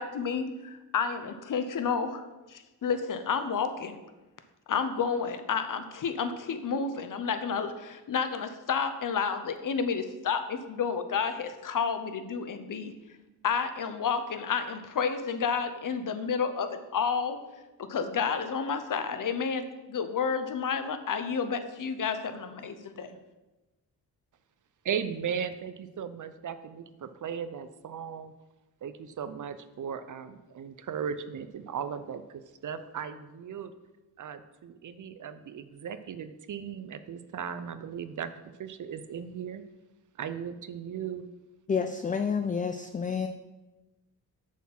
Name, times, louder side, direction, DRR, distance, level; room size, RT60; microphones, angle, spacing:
voice 1, 0.0-4.0 4.7-13.2 13.4-17.4 17.8-23.2, left 6 dB, 50° left, 0.8 m, -30 dB
voice 2, 24.8-28.3 28.8-32.2 32.6-33.7 34.2-39.6 40.2-41.3, right 7 dB, 50° right, 0.6 m, -37 dB
voice 3, 41.7-43.3, left 6 dB, 20° left, 0.4 m, -29 dB
7.1 x 4.3 x 5.9 m
cardioid pair, 70°, 40 cm